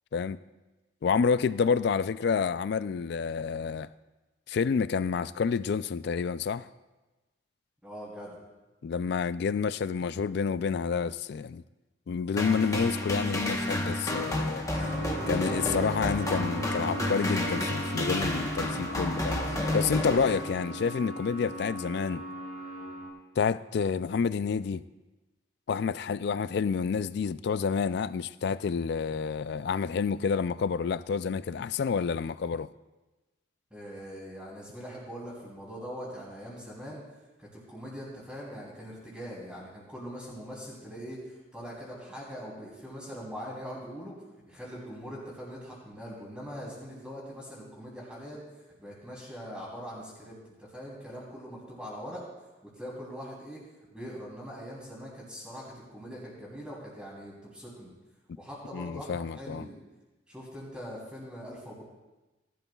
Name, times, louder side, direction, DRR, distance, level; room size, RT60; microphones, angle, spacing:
voice 1, 1.0-3.9 4.5-6.7 8.8-11.6 12.1-14.7 15.3-19.4 19.7-22.2 23.4-24.8 25.7-32.7 58.7-59.7, left 6 dB, 55° left, 0.3 m, -29 dB
voice 2, 7.8-8.4 14.7-15.3 33.7-37.0 37.4-44.1 44.5-48.4 48.8-52.2 52.8-53.6 53.9-57.9 58.4-59.7 60.3-61.8, equal, 5° right, 3.1 m, -42 dB
sound 1, 12.4-20.9, left 1 dB, 15° left, 1.0 m, -31 dB
sound 2, 14.7-23.1, right 1 dB, 65° right, 4.4 m, -38 dB
18.0 x 12.0 x 2.3 m
head